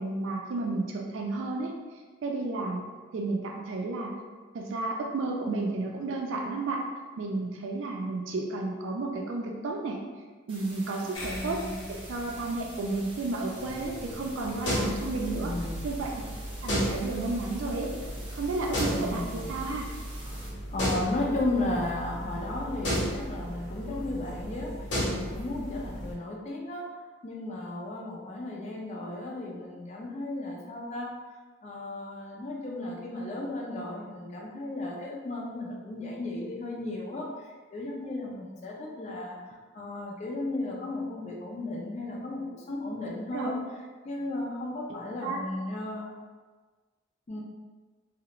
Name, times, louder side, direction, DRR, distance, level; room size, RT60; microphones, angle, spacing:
voice 1, 0.0-1.7 2.2-2.8 3.1-4.1 4.5-6.8 7.2-10.0 10.5-11.6 11.9-15.5 15.8-16.3 16.6-17.9 18.3-19.8 43.3-43.5 45.2-45.4, right 3 dB, 75° right, 0 dB, 0.3 m, -32 dB
sound 1, 10.5-20.5, right 1 dB, 25° right, 0.5 m, -48 dB
voice 2, 11.0-11.9 15.2-15.9 18.9-19.7 20.2-24.7 25.1-26.9 27.2-31.1 31.6-39.4 39.7-42.4 42.7-43.6 44.0-46.2 47.3-47.4, left 2 dB, 35° left, -2 dB, 0.4 m, -35 dB
sound 2, 11.1-16.0, equal, 85° left, 0.7 m, -45 dB
sound 3, 13.5-26.1, equal, 60° left, 0.8 m, -34 dB
2.4 x 2.0 x 2.9 m, 1.4 s
head